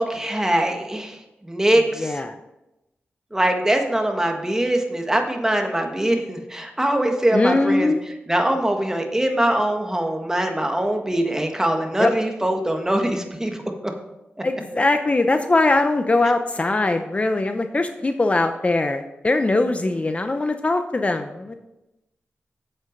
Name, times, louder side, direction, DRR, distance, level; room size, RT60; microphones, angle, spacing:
voice 1, 0.0-2.2 3.3-13.6, right 1 dB, 15° right, 4 dB, 1.6 m, -22 dB
voice 2, 2.0-2.3 7.3-8.0 12.0-12.1 14.4-21.5, left 2 dB, 35° left, 7 dB, 0.7 m, -21 dB
8.2 x 7.9 x 5.3 m, 0.93 s
cardioid pair, 65°, 4 cm